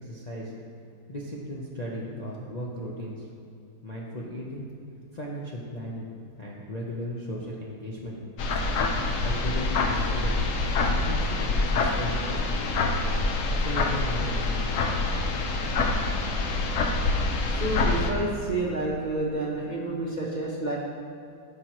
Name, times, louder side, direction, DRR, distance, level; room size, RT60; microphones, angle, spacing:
voice 1, 0.0-0.5 1.1-3.3 3.8-4.7 5.1-6.1 6.4-8.2 9.2-10.5 10.7-12.8 13.5-14.9, equal, 40° left, -5 dB, 0.6 m, -36 dB
sound 1, 8.4-18.1, left 3 dB, 60° left, 0.9 m, -26 dB
voice 2, 17.6-20.8, right 2 dB, 35° right, -4 dB, 0.8 m, -29 dB
13.5 x 5.2 x 3.0 m, 2.6 s
omnidirectional pair, 1.8 m